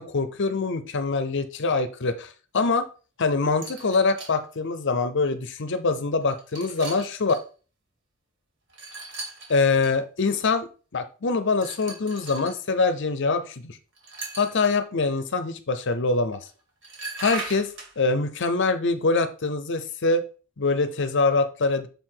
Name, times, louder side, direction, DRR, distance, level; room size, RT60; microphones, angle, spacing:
voice 1, 0.0-2.9 3.2-7.3 9.5-10.7 10.9-13.8 14.4-16.5 17.2-20.2 20.6-21.9, left 3 dB, 55° left, 10 dB, 0.7 m, -24 dB
sound 1, 3.6-4.4 5.2-5.3 6.2-7.4 8.7-9.9 11.6-12.6 14.0-14.7 16.4-16.5 16.8-17.9, right 3 dB, 60° right, 2.5 m, -38 dB
7.0 x 4.6 x 3.8 m, 0.36 s
head